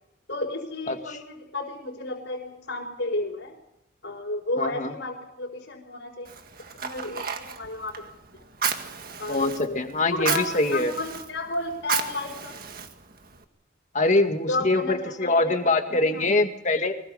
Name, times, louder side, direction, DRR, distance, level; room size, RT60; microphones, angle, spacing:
voice 1, 0.3-3.6 4.0-6.3 6.8-8.1 8.3-8.4 9.2-9.8 10.1-12.6 14.5-15.6 15.9-16.3, left 2 dB, 70° left, -4 dB, 4.4 m, -32 dB
voice 2, 4.6-4.9 9.3-10.9 13.9-16.9, left 2 dB, 40° left, 6 dB, 2.0 m, -23 dB
Fire, 6.2-13.4, right 6 dB, 50° right, 1.8 m, -33 dB
24.0 x 21.0 x 5.6 m, 0.84 s
head